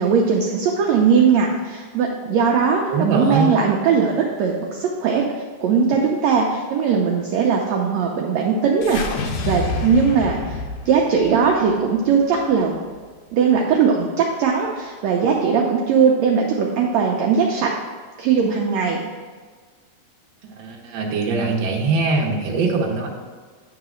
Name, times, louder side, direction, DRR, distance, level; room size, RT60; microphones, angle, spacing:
voice 1, 0.0-5.3 5.6-10.6 10.8-12.8 13.3-17.8 18.2-19.1, right 6 dB, 85° right, 0 dB, 1.5 m, -19 dB
voice 2, 2.9-3.5 20.6-23.1, right 3 dB, 65° right, -1 dB, 1.2 m, -21 dB
sound 1, 8.8-13.1, left 3 dB, 90° left, 1.4 m, -29 dB
9.4 x 3.9 x 6.2 m, 1.5 s
omnidirectional pair, 4.0 m